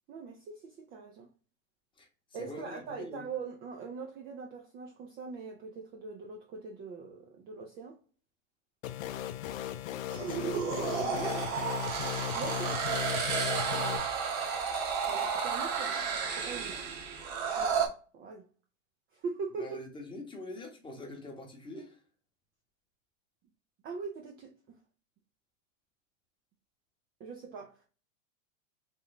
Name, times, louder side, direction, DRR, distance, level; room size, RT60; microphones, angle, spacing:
voice 1, 0.1-1.3 2.3-8.0 12.3-12.9 15.1-16.0 16.3-16.8 17.5-18.5 19.1-19.8 23.8-24.8 27.2-27.9, right 5 dB, 25° right, 0.4 m, -42 dB
voice 2, 2.4-3.3 10.1-11.4 19.6-22.0, left 2 dB, 10° left, 0.9 m, -43 dB
sound 1, 8.8-14.0, left 11 dB, 85° left, 0.5 m, -37 dB
sound 2, 10.1-17.9, right 6 dB, 40° right, 0.9 m, -32 dB
3.2 x 2.1 x 3.9 m
hypercardioid pair, 125°, 39 cm